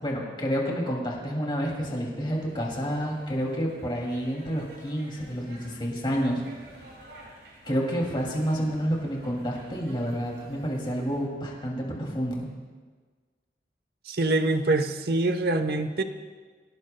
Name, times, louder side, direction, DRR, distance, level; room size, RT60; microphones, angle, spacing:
voice 1, 0.0-6.4 7.7-12.5, equal, 25° left, -2 dB, 2.5 m, -29 dB
sound 1, 2.1-11.3, right 1 dB, 80° right, 5.6 m, -51 dB
voice 2, 14.1-16.0, right 2 dB, 60° right, 9 dB, 1.0 m, -25 dB
25.0 x 17.0 x 2.2 m, 1.5 s
head